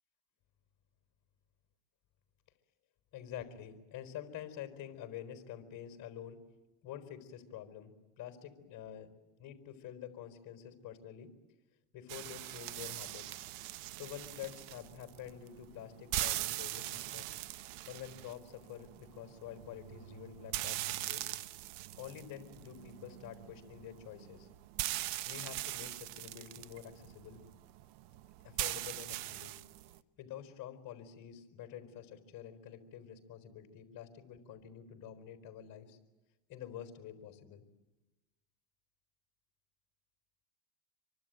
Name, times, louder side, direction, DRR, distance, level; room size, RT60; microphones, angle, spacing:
voice 1, 3.1-6.4 6.8-9.1 9.4-11.3 11.9-13.4 14.0-17.3 17.8-21.2 22.0-24.5 25.2-27.4 28.4-29.5 30.2-36.0 36.5-37.6, left 10 dB, 40° left, 8 dB, 4.4 m, -48 dB
sound 1, 12.1-30.0, right 16 dB, 55° right, 1.1 m, -41 dB
26.5 x 24.0 x 9.3 m, 1.1 s
supercardioid pair, 120°, 49 cm